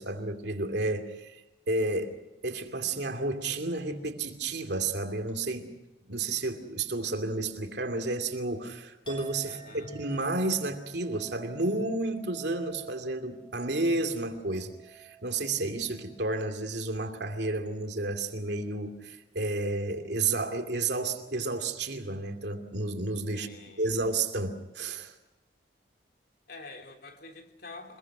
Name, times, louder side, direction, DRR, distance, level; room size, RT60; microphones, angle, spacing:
voice 1, 0.0-1.4 1.7-2.2 2.4-5.7 6.1-23.5 23.8-25.1, right 2 dB, 60° right, 5 dB, 2.6 m, -31 dB
Chink clink, 9.0-16.7 17.1-17.7, right 7 dB, 25° left, 7.1 m, -50 dB
voice 2, 9.4-9.9 23.3-23.9 26.5-28.0, left 3 dB, 55° left, 4 dB, 3.4 m, -47 dB
26.0 x 22.0 x 6.2 m, 1.0 s
head